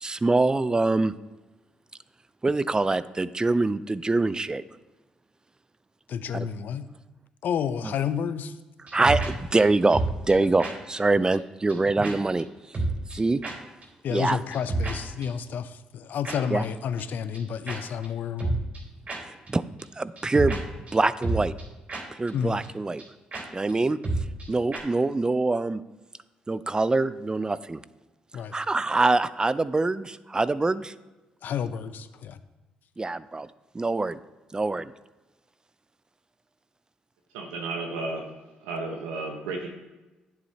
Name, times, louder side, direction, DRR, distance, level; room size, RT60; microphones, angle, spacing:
voice 1, 0.0-1.1 2.4-4.6 6.3-6.5 8.9-10.0 10.3-12.5 13.1-13.4 14.1-14.4 16.5-16.6 19.5-19.6 20.0-20.6 20.9-21.5 22.2-23.0 23.5-24.0 24.5-25.8 26.5-27.8 28.5-30.9 33.0-33.5 33.7-34.2 34.5-34.9, right 3 dB, 25° right, 16 dB, 0.5 m, -24 dB
voice 2, 6.1-6.9 7.4-8.6 10.4-10.5 14.0-18.6 22.3-22.6 28.3-28.5 31.4-32.4, left 7 dB, 65° left, 12 dB, 0.6 m, -30 dB
sound 1, 8.9-9.3 9.6-9.7 9.9-10.3 10.6-10.7 11.0-11.1 11.3-11.4 11.7-11.8 12.0-12.1 12.4-12.5 12.7-13.2 13.4-13.5 13.8-13.9 14.2-14.3 14.5-14.9 15.2-15.3 16.2-16.4 16.6-16.7 17.0-17.1 17.3-17.4 17.7-17.8 18.0-18.1 18.4-18.8 19.1-19.2 19.5-19.6 19.8-19.9 20.2-20.6 20.9-21.0 21.2-21.6 21.9-22.0 22.3-22.4 22.6-22.7 23.0-23.1 23.3-23.4 23.7-23.8 24.0-24.5 24.7-24.8, right 2 dB, 45° right, 3.0 m, -29 dB
voice 3, 37.3-38.2 38.6-39.7, right 3 dB, 90° right, 1 dB, 1.1 m, -33 dB
11.0 x 7.2 x 2.8 m, 1.1 s
hypercardioid pair, 55°, 3 cm